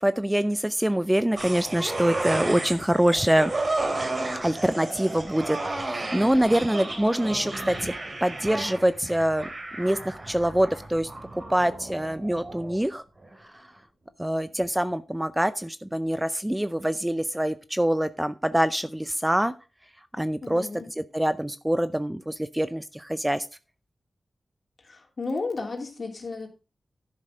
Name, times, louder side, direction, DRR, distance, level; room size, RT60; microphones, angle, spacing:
voice 1, 0.0-3.5 4.4-7.9 8.2-9.5 9.8-11.1 11.5-13.0 14.2-19.5 20.1-20.7 21.0-23.5, right 1 dB, 10° right, 13 dB, 0.6 m, -25 dB
sound 1, 1.4-12.9 13.2-13.3, right 2 dB, 45° right, 3.1 m, -33 dB
voice 2, 6.1-6.7 20.4-20.9 24.8-26.5, left 3 dB, 50° left, 2 dB, 2.9 m, -34 dB
11.0 x 6.5 x 4.9 m, 0.31 s
wide cardioid pair, 80°, 0 cm